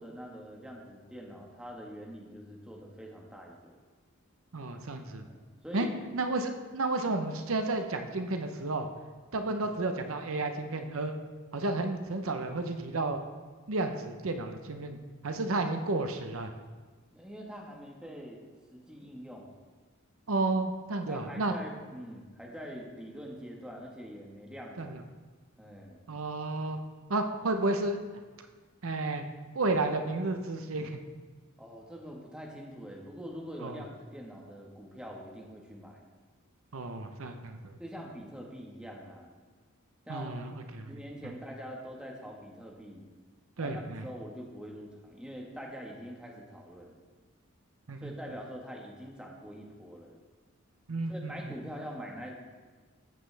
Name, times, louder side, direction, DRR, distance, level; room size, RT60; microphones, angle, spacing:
voice 1, 0.0-3.8 5.2-6.0 9.5-9.6 17.1-18.4 18.7-19.5 21.1-25.0 25.6-26.0 31.6-36.0 37.8-39.3 40.1-40.3 40.9-43.0 43.6-47.0 48.0-50.2 51.1-52.3, equal, 5° right, -1 dB, 1.5 m, -44 dB
voice 2, 4.5-5.2 5.7-5.9 6.1-8.9 9.3-11.1 11.5-13.2 13.7-15.0 15.2-16.5 20.3-21.5 24.8-25.0 26.1-26.8 27.1-28.0 28.8-29.2 29.5-31.0 33.6-33.8 36.7-37.7 40.1-40.9 41.2-41.3 43.6-44.1 47.9-48.1 50.9-51.5, right 2 dB, 90° right, 6 dB, 0.8 m, -32 dB
14.0 x 7.6 x 3.4 m, 1.4 s
head